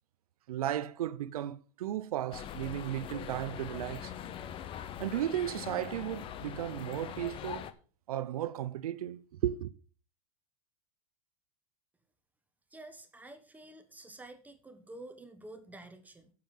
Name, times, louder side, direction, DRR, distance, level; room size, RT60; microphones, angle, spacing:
voice 1, 0.5-4.1 5.0-7.7 8.1-9.7, right 12 dB, 85° right, 0.8 m, -35 dB
sound 1, 2.3-7.7, left 10 dB, 30° left, 0.8 m, -42 dB
voice 2, 12.7-16.3, right 2 dB, 10° right, 1.1 m, -49 dB
9.4 x 7.0 x 5.5 m
supercardioid pair, 135°, 19 cm